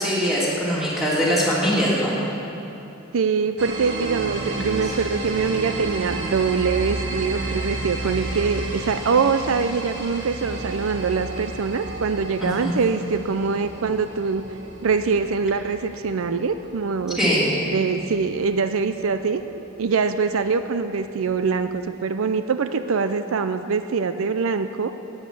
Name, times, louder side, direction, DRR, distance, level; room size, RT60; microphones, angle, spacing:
voice 1, 0.0-2.1 12.4-12.7 17.2-17.5, equal, ahead, -7 dB, 3.1 m, -22 dB
voice 2, 3.1-14.4 14.8-17.2 17.7-19.4 19.8-24.9, right 5 dB, 75° right, 10 dB, 0.5 m, -23 dB
sound 1, 3.6-19.0, right 2 dB, 55° right, 1.8 m, -32 dB
11.5 x 9.7 x 8.4 m, 2.9 s
head